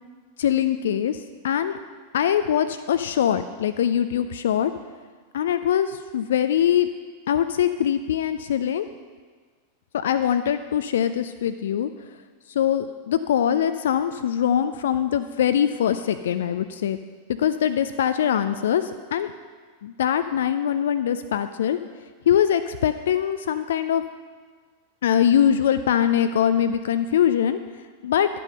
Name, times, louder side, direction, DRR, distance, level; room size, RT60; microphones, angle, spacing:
voice 1, 0.4-1.2 1.4-1.8 2.1-4.7 5.3-6.9 7.3-8.9 9.9-11.9 12.5-17.0 17.4-19.3 19.8-21.8 22.3-24.0 25.0-27.6 28.0-28.3, left 9 dB, 60° left, 11 dB, 0.4 m, -22 dB
11.5 x 8.3 x 5.4 m, 1.5 s
figure-of-eight pair, 90°, 0 cm